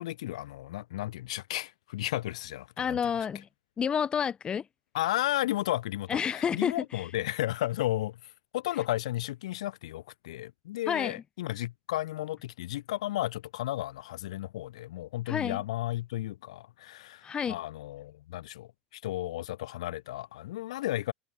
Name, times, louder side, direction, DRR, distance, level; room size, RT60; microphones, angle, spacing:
voice 1, 0.0-3.0 4.9-21.1, left 15 dB, 60° left, 3.1 m, -33 dB
voice 2, 2.8-3.5 3.8-4.6 6.1-7.0 10.9-11.1 15.3-15.6 17.2-17.6, left 7 dB, 25° left, 7.2 m, -29 dB
figure-of-eight pair, 85°, 4 cm